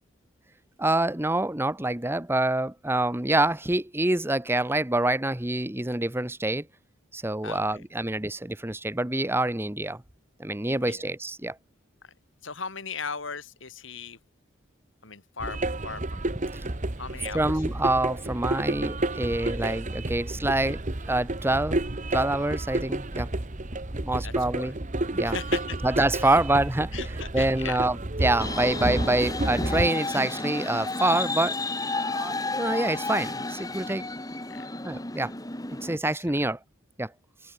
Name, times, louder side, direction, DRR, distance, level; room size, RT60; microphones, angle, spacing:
voice 1, 0.8-6.7 7.1-10.0 10.4-11.6 16.5-16.6 17.3-20.8 21.1-21.8 22.1-23.3 23.9-24.7 25.1-25.4 25.8-27.0 27.3-31.6 32.0-34.0 34.8-35.3 35.7-36.6 37.0-37.1, right 2 dB, 10° right, 1.0 m, -26 dB
voice 2, 7.4-7.8 10.7-11.0 12.4-14.2 15.0-16.3 17.0-17.5 24.2-24.7 25.2-25.8 26.2-26.4 26.9-27.9 34.5-34.7 36.3-36.4, left 5 dB, 60° left, 2.8 m, -38 dB
sound 1, 15.4-29.9, right 2 dB, 35° right, 1.3 m, -31 dB
sound 2, 28.4-36.0, left 2 dB, 15° left, 3.4 m, -31 dB
open air
head